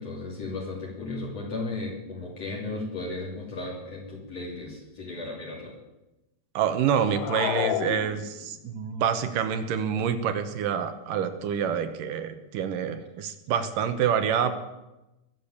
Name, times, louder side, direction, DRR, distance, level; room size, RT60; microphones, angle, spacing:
voice 1, 0.0-5.7, left 2 dB, 50° left, -3 dB, 4.0 m, -35 dB
voice 2, 6.5-14.5, right 8 dB, 75° right, 9 dB, 2.6 m, -27 dB
sound 1, 7.0-8.7, left 13 dB, 80° left, 1.7 m, -30 dB
21.5 x 7.6 x 8.6 m, 0.99 s
omnidirectional pair, 3.9 m